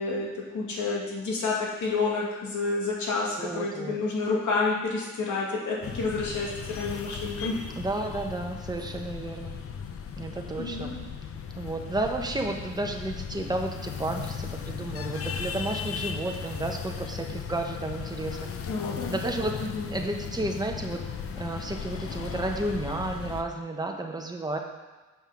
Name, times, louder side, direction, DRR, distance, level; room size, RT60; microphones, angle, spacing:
voice 1, 0.0-7.6 10.6-11.0 18.7-19.2 19.6-19.9, left 3 dB, 65° left, -3 dB, 2.3 m, -29 dB
voice 2, 3.4-4.0 7.8-9.6 10.2-10.9 11.6-18.5 19.1-19.5 19.9-21.0 21.4-24.6, right 2 dB, 10° right, 2 dB, 1.1 m, -32 dB
sound 1, 5.8-23.4, left 7 dB, 45° left, 0.7 m, -37 dB
7.1 x 5.5 x 5.9 m, 1.2 s
cardioid pair, 100°, 32 cm